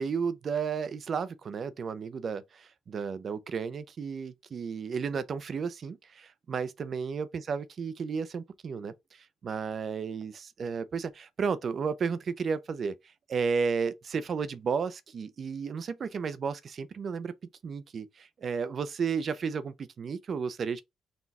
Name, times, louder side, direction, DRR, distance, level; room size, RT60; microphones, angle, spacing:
voice 1, 0.0-13.0 13.3-17.3 17.6-20.8, right 5 dB, 50° right, 0.6 m, -33 dB
4.1 x 2.3 x 4.1 m
cardioid pair, 90°, 0 cm